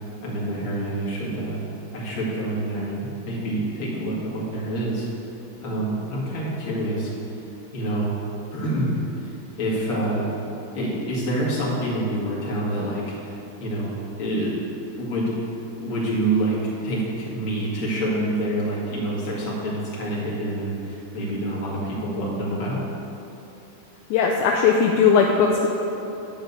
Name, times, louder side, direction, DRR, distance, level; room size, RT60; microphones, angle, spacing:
voice 1, 0.2-1.6 1.9-5.1 5.6-7.1 7.7-8.1 8.5-10.3 10.7-13.3 13.6-14.5 15.0-15.3 15.8-22.8, right 1 dB, 40° left, -6 dB, 2.7 m, -27 dB
voice 2, 24.1-25.7, left 6 dB, 80° left, 0 dB, 1.9 m, -18 dB
10.0 x 5.1 x 8.1 m, 3.0 s
omnidirectional pair, 3.6 m